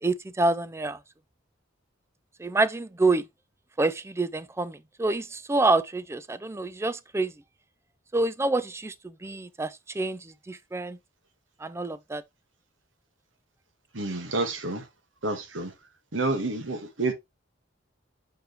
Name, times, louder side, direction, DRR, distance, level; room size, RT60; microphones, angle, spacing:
voice 1, 0.0-1.0 2.4-3.3 3.8-7.3 8.1-11.0 11.6-12.2, right 2 dB, 15° right, 0.4 m, -27 dB
voice 2, 13.9-14.8 15.2-15.7 16.1-17.1, right 2 dB, 70° right, 1.4 m, -29 dB
6.8 x 4.7 x 3.0 m
head